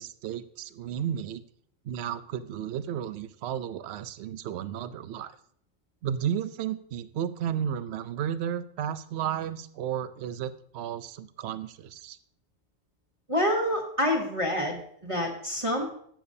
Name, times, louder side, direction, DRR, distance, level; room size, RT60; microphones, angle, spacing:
voice 1, 0.0-1.4 1.8-5.4 6.0-12.2, right 9 dB, 65° right, 13 dB, 0.8 m, -33 dB
voice 2, 13.3-15.9, left 1 dB, 25° right, -1 dB, 1.2 m, -27 dB
15.0 x 6.9 x 2.7 m, 0.64 s
omnidirectional pair, 1.3 m